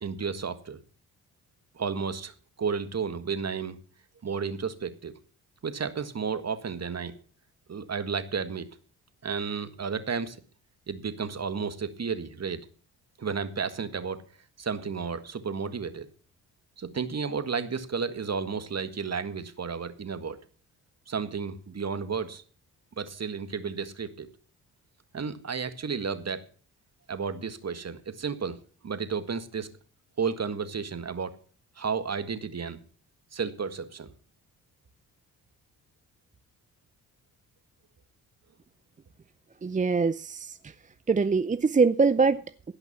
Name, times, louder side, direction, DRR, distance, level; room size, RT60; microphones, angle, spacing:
voice 1, 0.0-0.8 1.8-2.3 2.6-3.8 4.2-5.1 5.6-7.2 7.7-8.7 9.2-10.4 10.9-12.7 13.2-14.2 14.6-16.1 16.8-20.4 21.1-22.4 23.0-24.3 25.1-26.4 27.1-28.6 28.8-29.7 30.2-31.4 31.8-32.8 33.3-34.1, right 5 dB, 40° right, 10 dB, 1.8 m, -32 dB
voice 2, 39.6-40.7 41.1-42.4, right 4 dB, 20° right, 14 dB, 0.6 m, -23 dB
17.0 x 5.9 x 7.2 m, 0.40 s
hypercardioid pair, 50°, 40 cm